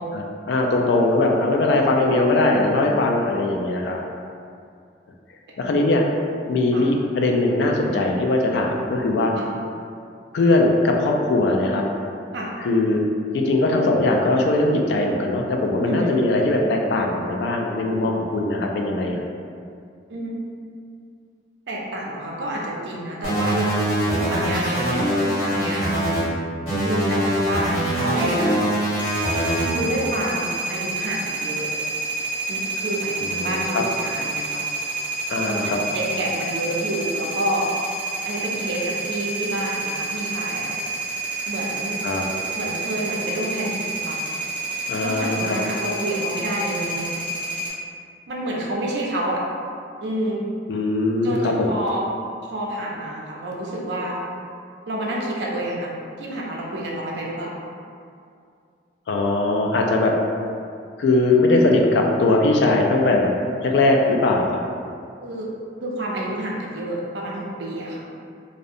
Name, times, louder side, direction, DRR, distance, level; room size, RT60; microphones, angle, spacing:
voice 1, 0.1-4.0 5.6-6.0 6.5-9.3 10.3-11.8 12.6-13.0 13.3-19.2 33.2-33.8 35.3-35.8 42.0-42.2 44.9-45.6 50.7-51.7 59.1-60.1 61.0-63.3 63.6-64.6, left 2 dB, 70° left, 1 dB, 0.3 m, -20 dB
voice 2, 21.7-23.8 24.3-25.0 25.4-26.0 26.8-28.5 29.7-31.7 32.5-34.6 35.4-37.7 38.2-40.7 41.5-42.0 42.5-44.2 45.0-47.3 48.3-49.4 50.0-50.4 51.2-52.0 52.5-54.2 54.9-57.6 65.2-65.5 65.8-68.0, right 1 dB, 75° right, -3 dB, 0.4 m, -28 dB
sound 1, 23.2-26.2 26.7-29.7, right 1 dB, 35° left, 1.2 m, -23 dB
sound 2, 29.0-47.7, right 3 dB, 10° right, 0.5 m, -29 dB
2.6 x 2.0 x 2.5 m, 2.4 s
head